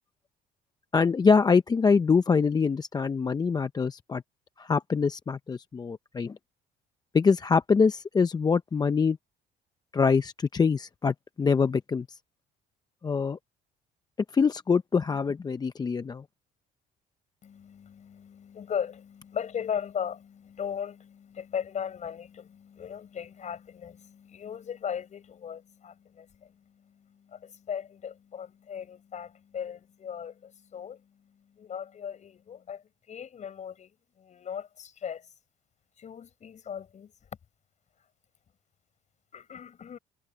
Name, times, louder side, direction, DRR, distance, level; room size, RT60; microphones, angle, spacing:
voice 1, 0.9-4.2 4.6-6.4 7.1-9.2 9.9-12.2 13.0-13.4 14.3-16.2, left 5 dB, 25° left, 0.6 m, -24 dB
voice 2, 17.4-35.3 36.0-37.1 39.3-40.0, left 8 dB, 45° left, 6.3 m, -38 dB
cardioid pair, 110°, 17 cm